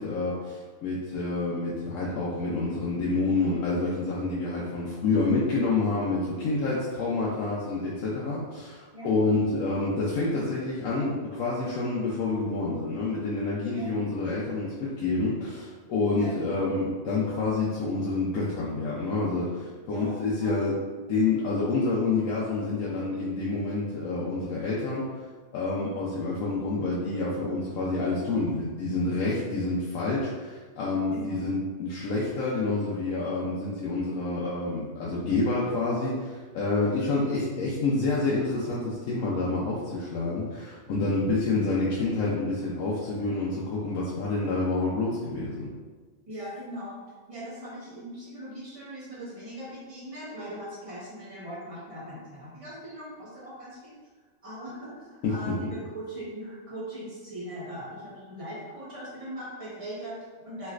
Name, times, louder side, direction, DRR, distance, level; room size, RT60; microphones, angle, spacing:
voice 1, 0.0-20.7 21.1-25.1 25.5-45.7 55.2-55.3, left 3 dB, 80° left, -6 dB, 1.0 m, -28 dB
voice 2, 16.2-16.7 19.8-20.6 31.1-31.4 46.3-47.0 47.3-53.9 54.4-60.7, right 1 dB, 30° right, -8 dB, 1.0 m, -40 dB
3.1 x 3.1 x 2.3 m, 1.4 s
omnidirectional pair, 1.4 m